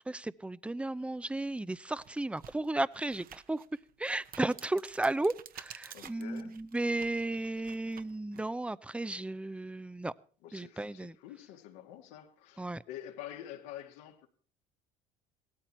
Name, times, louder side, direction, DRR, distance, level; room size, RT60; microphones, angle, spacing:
voice 1, 0.0-3.6 4.0-10.1 10.5-11.2 12.6-12.8, right 2 dB, 5° right, 0.6 m, -34 dB
sound 1, 1.2-1.3 1.9-8.5, right 9 dB, 45° right, 1.1 m, -52 dB
voice 2, 5.9-6.6 10.4-14.3, left 11 dB, 80° left, 2.2 m, -47 dB
17.5 x 13.5 x 4.4 m
supercardioid pair, 85°, 20 cm